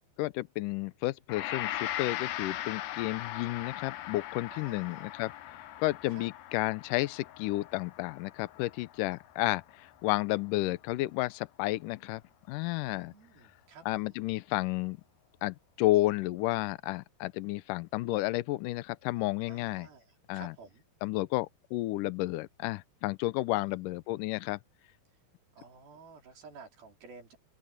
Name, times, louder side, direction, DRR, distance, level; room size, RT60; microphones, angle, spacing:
voice 1, 0.2-12.2 12.5-13.1 13.9-15.0 15.4-19.9 20.3-20.5 21.0-24.6, left 18 dB, 90° left, 1.8 m, -32 dB
Gong, 1.3-10.5, left 13 dB, 70° left, 2.6 m, -40 dB
voice 2, 4.5-5.2 6.1-6.3 12.9-14.2 19.4-20.8 23.6-23.9 25.5-27.4, right 4 dB, 65° right, 5.0 m, -53 dB
open air
omnidirectional pair, 4.6 m